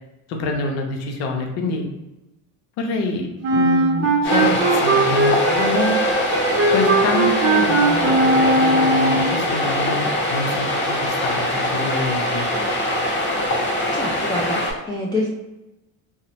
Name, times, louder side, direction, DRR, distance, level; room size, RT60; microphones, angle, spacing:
voice 1, 0.3-1.9 2.8-6.0 6.7-10.7 11.0-12.5, left 2 dB, 70° left, 2 dB, 0.7 m, -26 dB
Wind instrument woodwind instrument, 3.4-9.4, right 2 dB, 35° right, 0.6 m, -19 dB
sound 1, 4.2-14.7, left 1 dB, 25° left, 0.9 m, -22 dB
voice 2, 13.9-15.3, left 1 dB, 10° left, -5 dB, 0.4 m, -26 dB
2.7 x 2.0 x 2.9 m, 0.99 s
supercardioid pair, 95°, 42 cm